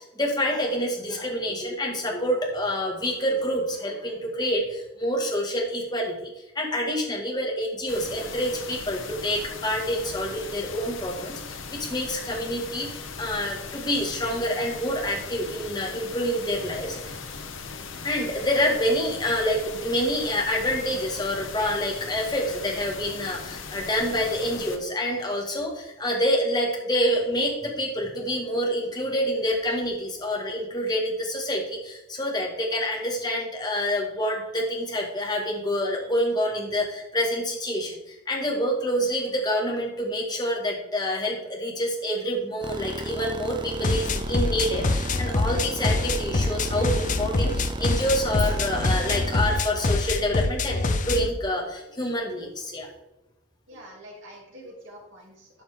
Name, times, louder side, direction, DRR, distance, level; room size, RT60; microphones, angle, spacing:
voice 1, 0.0-17.2 18.0-52.9, equal, 20° left, -2 dB, 2.0 m, -27 dB
sound 1, 7.9-24.8, left 5 dB, 80° left, 1.0 m, -39 dB
sound 2, 42.6-49.5, right 2 dB, 25° right, 0.5 m, -35 dB
sound 3, 43.7-51.3, left 3 dB, 40° left, 0.6 m, -25 dB
voice 2, 53.7-55.6, equal, 70° right, -2 dB, 3.1 m, -46 dB
12.0 x 6.0 x 3.7 m, 0.91 s
head